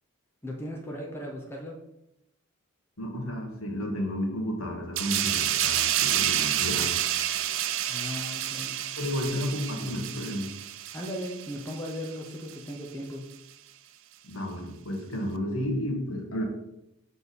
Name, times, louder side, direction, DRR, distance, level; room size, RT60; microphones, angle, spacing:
voice 1, 0.4-1.8 7.9-8.8 10.9-13.2, equal, 10° left, -2 dB, 0.7 m, -37 dB
voice 2, 3.0-7.0 9.0-10.5 14.2-16.4, equal, 70° left, 1 dB, 1.3 m, -32 dB
sound 1, 5.0-12.1 12.5-12.7, right 11 dB, 60° right, 0.4 m, -29 dB
6.2 x 3.6 x 4.1 m, 0.85 s
head